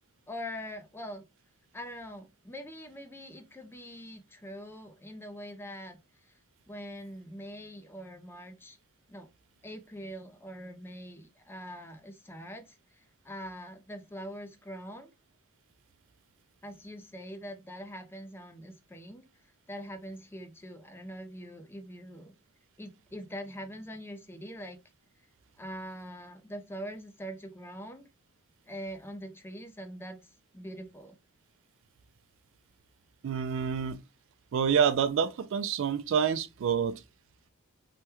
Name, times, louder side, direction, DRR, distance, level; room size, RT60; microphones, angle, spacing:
voice 1, 0.3-1.2 1.7-6.3 6.7-8.8 9.1-9.3 9.6-15.1 16.6-19.3 19.7-22.3 22.8-24.8 25.6-28.1 28.7-31.2, equal, 10° left, 0.4 m, -43 dB
voice 2, 33.2-34.0 34.5-36.9, right 7 dB, 60° right, 0.3 m, -27 dB
3.3 x 2.2 x 2.9 m
head